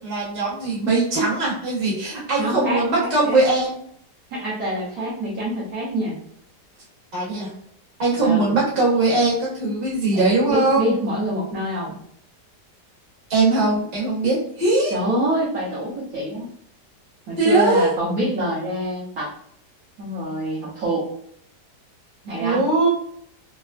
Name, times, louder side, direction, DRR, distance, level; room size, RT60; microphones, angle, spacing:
voice 1, 0.0-3.8 7.1-7.5 8.0-10.9 13.3-14.9 17.4-17.9 22.4-22.9, right 3 dB, 30° right, -6 dB, 1.1 m, -20 dB
voice 2, 2.4-3.4 4.3-6.2 8.2-8.5 10.1-11.9 14.9-16.5 17.3-19.3 20.0-21.1 22.2-22.6, equal, 65° right, -7 dB, 1.2 m, -26 dB
3.3 x 2.0 x 2.3 m, 0.66 s
omnidirectional pair, 1.8 m